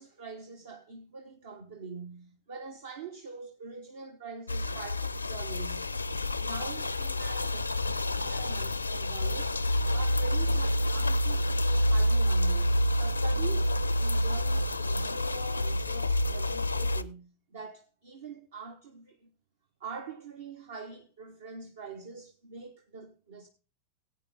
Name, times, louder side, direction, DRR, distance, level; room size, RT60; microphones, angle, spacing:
voice 1, 0.0-6.0 6.4-9.6 9.9-19.3 19.8-23.5, right 5 dB, 60° right, 1.0 m, -44 dB
sound 1, 4.5-17.0, left 1 dB, 80° left, 0.4 m, -28 dB
16.0 x 8.6 x 3.5 m
figure-of-eight pair, 90°, 0 cm